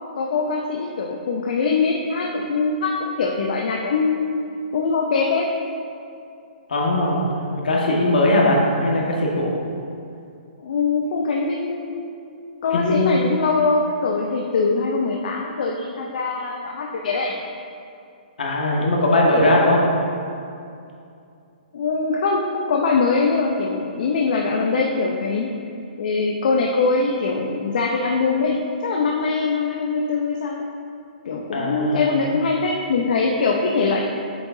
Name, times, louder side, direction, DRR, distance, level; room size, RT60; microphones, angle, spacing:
voice 1, 0.1-4.3 4.7-5.5 10.6-12.1 12.6-17.3 21.7-25.5 26.0-30.6 31.2-34.0, left 4 dB, 65° left, 0 dB, 0.6 m, -22 dB
voice 2, 6.7-9.5 12.7-13.1 18.4-19.8 31.5-32.1, left 1 dB, 80° left, -2 dB, 1.6 m, -19 dB
8.0 x 6.7 x 2.7 m, 2.5 s
hypercardioid pair, 135°, 5 cm